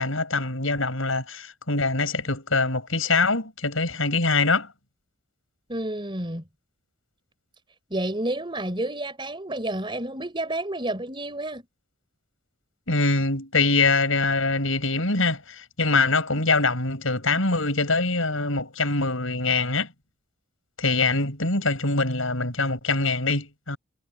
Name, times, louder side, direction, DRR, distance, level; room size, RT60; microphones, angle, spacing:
voice 1, 0.0-4.7 12.9-19.9 20.8-23.8, left 3 dB, 75° left, 6.7 m, -24 dB
voice 2, 5.7-6.4 7.9-11.6, right 1 dB, 25° right, 4.6 m, -30 dB
head